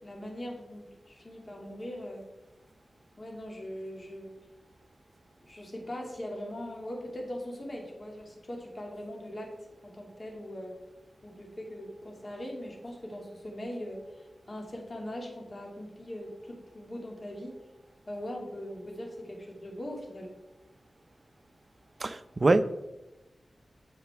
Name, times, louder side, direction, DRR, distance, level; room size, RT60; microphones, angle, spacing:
voice 1, 0.0-2.2 3.2-4.4 5.4-9.5 9.8-10.8 11.2-17.6 18.1-20.3, equal, 45° left, 0 dB, 2.2 m, -40 dB
voice 2, 22.0-22.6, right 2 dB, 45° right, 12 dB, 0.5 m, -24 dB
9.5 x 7.0 x 3.5 m, 1.0 s
wide cardioid pair, 65°, 0 cm